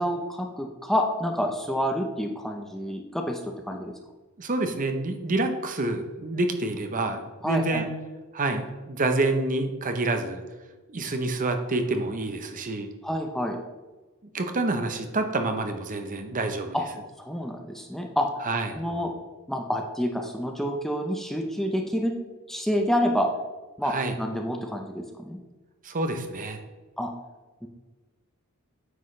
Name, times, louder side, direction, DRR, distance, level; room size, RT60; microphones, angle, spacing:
voice 1, 0.0-3.4 3.7-3.9 7.4-7.9 13.0-13.6 16.7-16.8 17.2-18.3 18.7-19.1 19.5-22.2 22.5-23.3 23.8-25.4 27.0-27.1 27.6-27.7, equal, ahead, 2 dB, 0.6 m, -28 dB
voice 2, 4.4-7.9 8.3-10.4 10.9-12.9 14.2-16.8 18.4-18.8 23.8-24.1 25.8-26.6, right 2 dB, 35° right, 6 dB, 0.8 m, -28 dB
9.4 x 6.0 x 3.2 m, 1.2 s
head